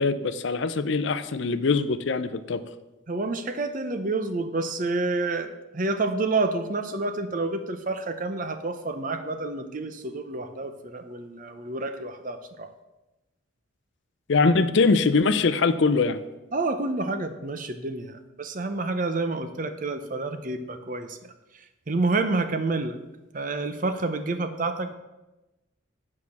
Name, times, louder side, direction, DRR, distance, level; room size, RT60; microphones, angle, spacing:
voice 1, 0.0-2.6 14.3-16.2, left 4 dB, 60° left, 12 dB, 0.5 m, -22 dB
voice 2, 3.1-12.7 16.5-21.2 21.9-23.0 23.3-24.9, right 3 dB, 40° right, 9 dB, 0.6 m, -29 dB
8.3 x 4.9 x 7.1 m, 1.0 s
head